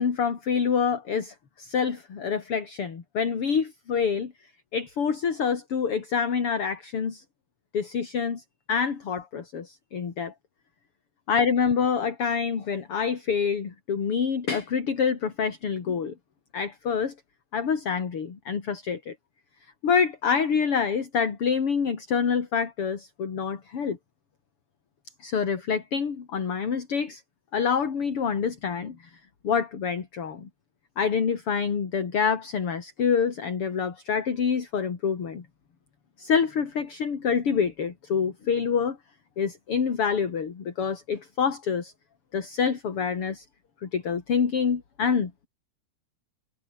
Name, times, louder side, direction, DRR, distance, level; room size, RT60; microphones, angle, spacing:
voice 1, 0.0-4.3 4.7-7.2 7.7-8.4 8.7-10.3 11.3-16.1 16.5-17.1 17.5-19.2 19.8-24.0 25.2-27.2 27.5-29.0 29.4-30.5 31.0-35.5 36.2-39.0 39.4-41.9 42.3-43.5 43.8-45.5, left 6 dB, 50° left, 3.5 m, -26 dB
omnidirectional pair, 3.3 m